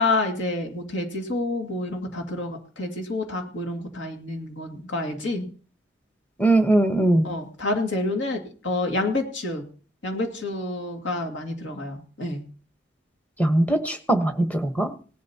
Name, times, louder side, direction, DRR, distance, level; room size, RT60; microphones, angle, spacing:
voice 1, 0.0-5.5 7.2-9.6 10.0-12.4, left 2 dB, 75° left, 2 dB, 2.3 m, -28 dB
voice 2, 6.4-7.3 13.4-14.9, right 1 dB, 10° left, 7 dB, 1.2 m, -20 dB
18.5 x 11.5 x 2.9 m, 0.38 s
head